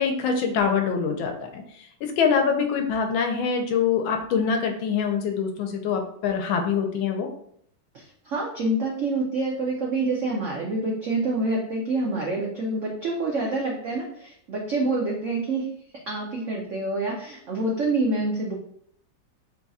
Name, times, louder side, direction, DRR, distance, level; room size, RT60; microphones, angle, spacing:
voice 1, 0.0-1.6 2.0-7.3, left 6 dB, 85° left, 4 dB, 1.4 m, -24 dB
voice 2, 7.9-15.7 16.1-18.5, right 2 dB, 85° right, -2 dB, 0.6 m, -27 dB
3.9 x 2.3 x 4.0 m, 0.67 s
omnidirectional pair, 2.2 m